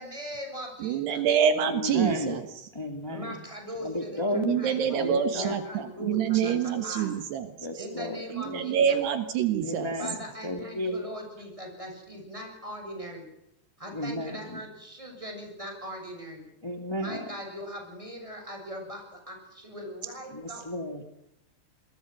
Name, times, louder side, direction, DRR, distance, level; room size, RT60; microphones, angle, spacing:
voice 1, 0.0-1.2 3.1-4.2 4.5-7.1 7.8-9.0 10.0-13.3 13.8-16.4 17.0-20.6, equal, 5° right, 2 dB, 7.7 m, -40 dB
voice 2, 0.8-2.4 4.5-7.5 8.3-9.9, right 8 dB, 70° right, 9 dB, 3.4 m, -26 dB
voice 3, 1.6-2.4 2.7-3.4 3.8-4.6 4.8-5.6 5.9-7.0 7.6-8.2 8.4-8.6 9.6-10.2 10.4-11.0 13.9-14.6 16.6-17.3 20.3-21.0, left 1 dB, 10° left, 5 dB, 1.3 m, -33 dB
26.0 x 22.0 x 6.2 m, 0.83 s
omnidirectional pair, 5.0 m